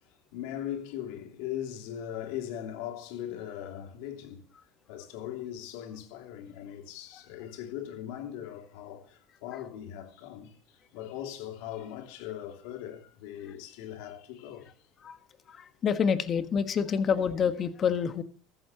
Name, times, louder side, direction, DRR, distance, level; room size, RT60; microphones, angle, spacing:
voice 1, 0.3-4.4 4.9-14.7, left 11 dB, 75° left, 2.8 m, -39 dB
voice 2, 15.5-18.2, left 7 dB, 35° left, 1.5 m, -27 dB
14.5 x 14.5 x 3.0 m
supercardioid pair, 110°, 0 cm